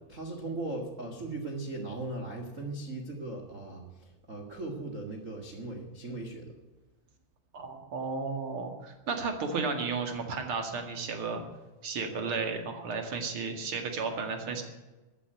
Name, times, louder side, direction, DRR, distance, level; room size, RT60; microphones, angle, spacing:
voice 1, 0.1-6.5, right 2 dB, 65° right, 1 dB, 0.7 m, -38 dB
voice 2, 7.5-11.4 11.8-14.6, right 4 dB, 40° right, 4 dB, 2.1 m, -33 dB
14.5 x 8.5 x 9.3 m, 1.1 s
omnidirectional pair, 4.8 m